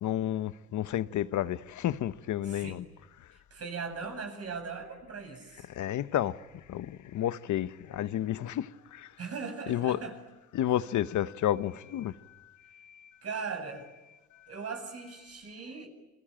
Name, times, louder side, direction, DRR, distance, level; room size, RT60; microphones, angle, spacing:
voice 1, 0.0-2.9 3.2-3.3 5.7-9.2 9.7-10.0 10.5-13.2 14.3-14.5, left 12 dB, 75° left, 1.1 m, -32 dB
voice 2, 2.5-2.8 3.3-5.7 9.2-10.2 13.2-13.8 14.5-15.9, right 5 dB, 50° right, 8.0 m, -39 dB
29.0 x 23.0 x 8.9 m
cardioid pair, 90°, 30 cm